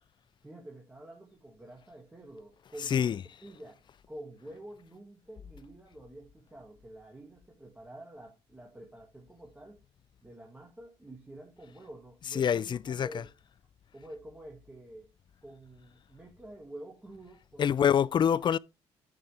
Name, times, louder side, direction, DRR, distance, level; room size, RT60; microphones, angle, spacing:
voice 1, 0.4-3.8 4.1-9.8 10.2-13.3 13.9-15.1 15.4-18.1, right 1 dB, 10° right, 2.0 m, -48 dB
voice 2, 2.9-3.2 12.3-13.2 17.6-18.6, left 8 dB, 40° left, 0.4 m, -26 dB
8.7 x 6.2 x 3.3 m
supercardioid pair, 75°, 13 cm